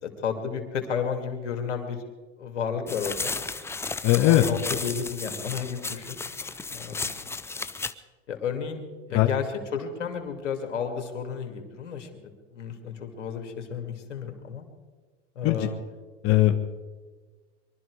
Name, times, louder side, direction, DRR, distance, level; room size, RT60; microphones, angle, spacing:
voice 1, 0.0-2.0 2.4-3.3 4.2-6.2 6.7-7.1 8.3-8.8 9.1-14.6 15.4-15.8, left 6 dB, 90° left, 5 dB, 2.6 m, -32 dB
sound 1, 2.9-7.9, left 4 dB, 5° left, 0.5 m, -34 dB
voice 2, 4.0-4.4 9.1-9.3 15.4-15.6 16.2-16.6, left 15 dB, 40° left, 5 dB, 1.2 m, -19 dB
23.5 x 12.5 x 4.8 m, 1.4 s
hypercardioid pair, 110°, 35 cm